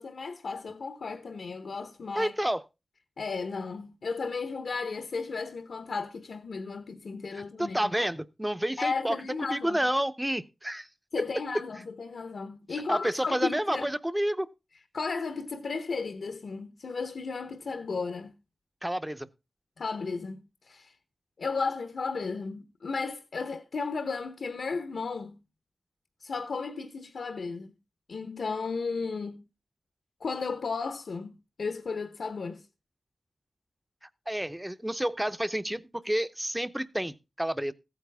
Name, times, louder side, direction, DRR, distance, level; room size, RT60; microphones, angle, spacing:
voice 1, 0.0-2.3 3.2-7.8 8.8-9.8 11.1-13.9 14.9-18.3 19.8-20.9 21.4-25.3 26.2-27.7 28.1-29.4 30.2-31.3 31.6-32.6, left 4 dB, 80° left, 1.0 m, -34 dB
voice 2, 2.2-2.6 7.4-9.2 9.5-10.9 12.9-14.5 18.8-19.3 34.3-37.7, right 1 dB, 10° right, 0.6 m, -30 dB
15.0 x 9.1 x 3.5 m
wide cardioid pair, 105°, 0 cm